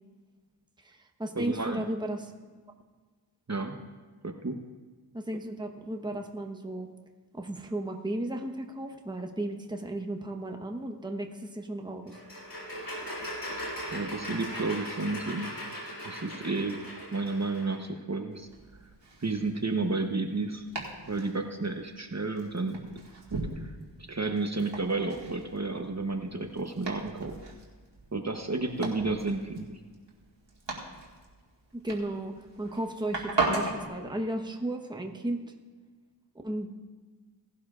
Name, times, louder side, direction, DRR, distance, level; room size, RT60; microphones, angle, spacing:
voice 1, 0.8-2.3 5.1-6.9 7.3-12.2 31.7-35.5 36.4-36.7, right 1 dB, 10° right, 3 dB, 1.0 m, -34 dB
voice 2, 1.4-1.8 3.5-3.8 4.2-4.6 13.9-15.6 16.0-16.8 17.1-18.5 19.2-20.6 21.1-22.9 23.3-27.3 28.1-29.8, right 3 dB, 35° right, 4 dB, 1.0 m, -32 dB
sound 1, 12.1-17.8, equal, 65° left, 3.7 m, -39 dB
Domestic sounds home sounds, 18.3-33.9, right 3 dB, 65° right, 2.2 m, -38 dB
17.5 x 11.5 x 2.5 m, 1.4 s
wide cardioid pair, 45°, 45 cm